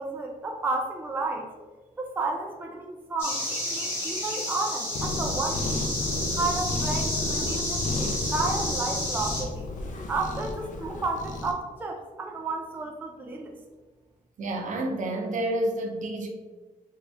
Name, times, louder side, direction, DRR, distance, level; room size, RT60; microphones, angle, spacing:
voice 1, 0.0-1.5 2.0-5.6 6.3-9.7 10.1-13.6, right 3 dB, 15° right, 2 dB, 0.3 m, -32 dB
sound 1, 3.2-9.4, left 1 dB, 15° left, 1.0 m, -31 dB
Cat, 4.9-11.5, left 2 dB, 60° left, 0.5 m, -32 dB
voice 2, 14.4-16.3, right 1 dB, 60° right, 2 dB, 0.6 m, -29 dB
3.4 x 2.7 x 3.3 m, 1.3 s
wide cardioid pair, 165°, 15 cm